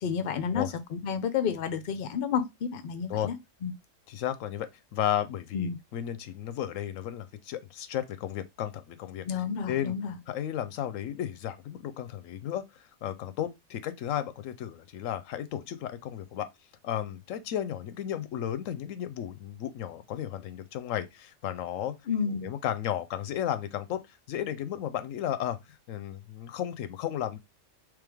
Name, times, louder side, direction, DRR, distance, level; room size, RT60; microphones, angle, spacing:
voice 1, 0.0-3.3 3.6-3.7 5.5-5.8 9.3-10.2 22.1-22.5, left 7 dB, 55° left, 0.7 m, -30 dB
voice 2, 4.1-9.3 9.7-9.9 10.3-16.5 16.8-21.9 22.3-27.4, left 11 dB, 90° left, 1.0 m, -34 dB
3.4 x 3.3 x 3.4 m
omnidirectional pair, 1.3 m